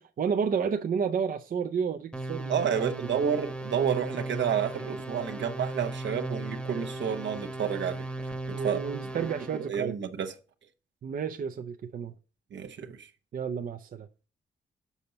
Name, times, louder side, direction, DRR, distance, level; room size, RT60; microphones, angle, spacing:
voice 1, 0.0-3.0 8.5-10.0 11.0-12.1 13.3-14.1, right 6 dB, 45° right, 0.5 m, -31 dB
sound 1, 2.1-9.7, right 2 dB, 5° left, 1.0 m, -37 dB
voice 2, 2.5-8.8 9.1-9.3 9.7-10.3 12.5-13.1, right 8 dB, 75° right, 1.0 m, -30 dB
7.0 x 5.8 x 4.0 m
wide cardioid pair, 160°, 19 cm